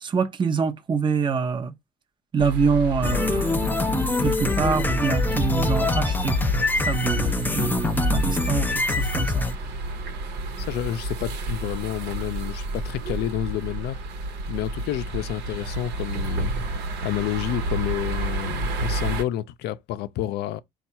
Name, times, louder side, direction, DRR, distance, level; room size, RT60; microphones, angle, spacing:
voice 1, 0.0-1.7 2.3-6.4 6.7-9.5, right 5 dB, 30° right, 0.7 m, -25 dB
sound 1, 2.4-19.2, right 2 dB, 80° right, 1.0 m, -30 dB
sound 2, 3.0-9.5, left 3 dB, 10° left, 0.4 m, -24 dB
voice 2, 10.6-14.0 14.5-16.5 17.0-20.6, left 12 dB, 75° left, 0.5 m, -29 dB
4.4 x 2.4 x 4.3 m
cardioid pair, 110°, 17 cm